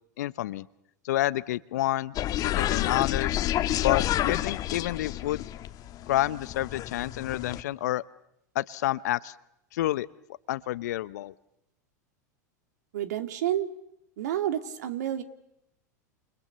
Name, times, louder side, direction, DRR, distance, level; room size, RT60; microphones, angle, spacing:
voice 1, 0.2-0.7 1.0-2.1 2.4-3.4 3.8-5.5 6.1-8.0 8.5-9.3 9.7-10.1 10.5-11.3, left 15 dB, 65° left, 17 dB, 1.0 m, -29 dB
sound 1, 2.1-7.6, left 13 dB, 40° left, 1.6 m, -29 dB
voice 2, 12.9-13.7 14.2-15.2, right 11 dB, 70° right, 7 dB, 2.8 m, -29 dB
30.0 x 29.0 x 6.9 m, 0.84 s
hypercardioid pair, 90°, 10 cm